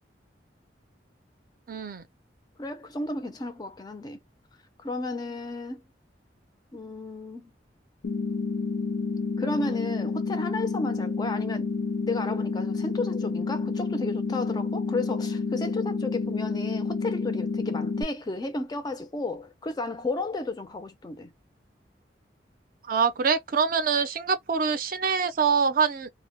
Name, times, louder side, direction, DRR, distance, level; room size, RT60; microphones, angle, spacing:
voice 1, 1.7-2.0 22.9-26.1, right 5 dB, 50° right, 0.4 m, -25 dB
voice 2, 2.6-4.2 4.8-5.8 6.7-7.5 9.4-11.7 12.1-21.3, left 2 dB, 20° left, 0.3 m, -33 dB
sound 1, 8.0-18.0, left 4 dB, 75° left, 0.5 m, -29 dB
2.0 x 2.0 x 3.0 m
head